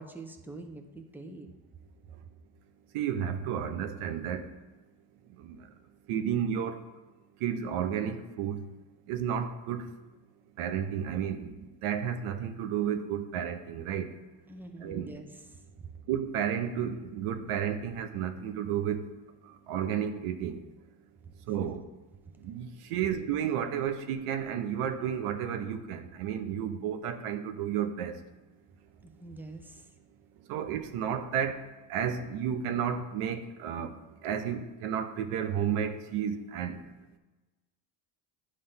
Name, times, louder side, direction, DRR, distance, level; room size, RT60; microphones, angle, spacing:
voice 1, 0.0-1.5 14.5-15.9 21.2-21.3 21.6-21.7 29.0-29.9, right 2 dB, 5° right, 5 dB, 0.8 m, -45 dB
voice 2, 2.9-4.5 5.4-5.6 6.1-6.8 7.4-8.6 9.1-9.8 10.6-11.5 11.8-14.1 14.8-15.1 16.1-19.0 19.7-20.6 21.5-21.8 22.4-28.2 30.5-31.6 31.9-33.9 34.2-36.8, right 8 dB, 90° right, 7 dB, 0.8 m, -32 dB
9.7 x 3.4 x 5.5 m, 1.1 s
cardioid pair, 85°, 50 cm